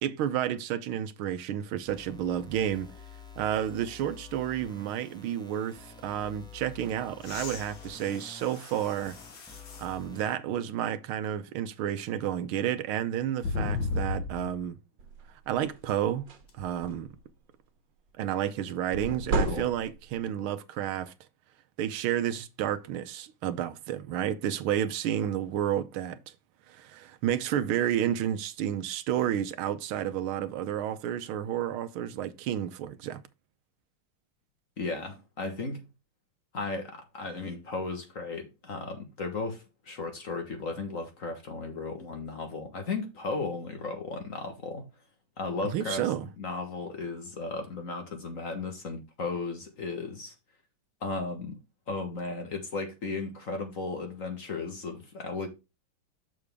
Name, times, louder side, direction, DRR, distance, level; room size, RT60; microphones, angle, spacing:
voice 1, 0.0-2.9 3.4-9.2 9.8-14.8 15.5-16.3 16.5-17.1 18.2-21.1 21.8-26.2 26.7-33.2 45.7-46.3, right 10 dB, 80° right, 1.5 m, -31 dB
sound 1, 1.9-10.3, left 5 dB, 5° left, 0.8 m, -49 dB
sound 2, 7.2-10.0 10.6-10.7 13.4-14.6 16.5-16.6, left 4 dB, 70° left, 2.2 m, -35 dB
sound 3, 15.0-15.3 15.7-15.9 16.1-17.3 18.9-20.2, right 2 dB, 60° right, 1.8 m, -32 dB
voice 2, 34.8-35.8 36.5-44.8 45.4-50.3 51.0-51.6 51.9-55.5, left 3 dB, 40° left, 1.5 m, -35 dB
6.9 x 6.6 x 3.5 m
omnidirectional pair, 2.3 m